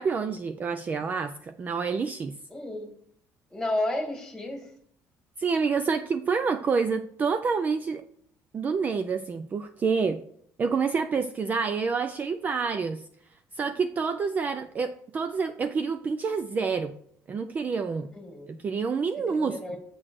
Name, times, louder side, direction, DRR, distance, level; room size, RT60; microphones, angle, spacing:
voice 1, 0.0-2.3 5.4-8.0 8.5-10.2 10.6-13.0 13.3-17.0 17.3-18.1 18.6-19.8, right 5 dB, 25° right, 9 dB, 0.4 m, -28 dB
voice 2, 2.5-2.9 3.5-4.7 18.1-18.6 19.3-19.8, left 1 dB, 5° left, 1 dB, 2.0 m, -32 dB
7.6 x 4.0 x 6.3 m, 0.64 s
cardioid pair, 150°, 6 cm